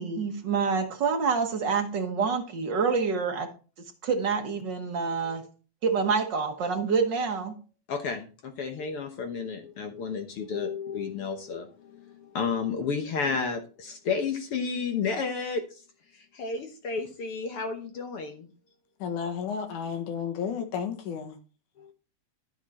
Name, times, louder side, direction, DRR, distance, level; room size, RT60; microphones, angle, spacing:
voice 1, 0.0-3.5 4.0-5.4 5.8-7.6, right 5 dB, 50° right, 4 dB, 1.5 m, -27 dB
voice 2, 7.9-15.6 16.3-18.5 21.8-21.9, left 5 dB, 60° left, 5 dB, 1.7 m, -32 dB
voice 3, 19.0-21.4, left 7 dB, 85° left, 4 dB, 2.9 m, -32 dB
12.5 x 6.4 x 4.3 m, 0.36 s
omnidirectional pair, 3.4 m